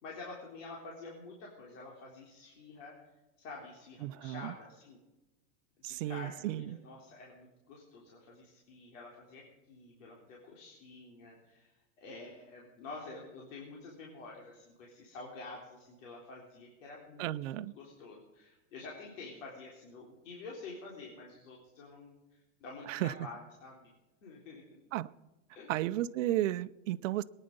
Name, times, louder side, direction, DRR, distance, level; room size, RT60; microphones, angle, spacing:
voice 1, 0.0-3.0 3.4-5.0 5.9-11.7 12.0-23.8 24.2-24.8 25.5-25.7, left 3 dB, 75° left, 3.8 m, -48 dB
voice 2, 4.0-4.5 5.8-6.8 17.2-17.7 22.9-23.1 24.9-25.1 25.7-27.2, right 14 dB, 75° right, 0.8 m, -34 dB
22.5 x 10.0 x 5.3 m
supercardioid pair, 165°, 38 cm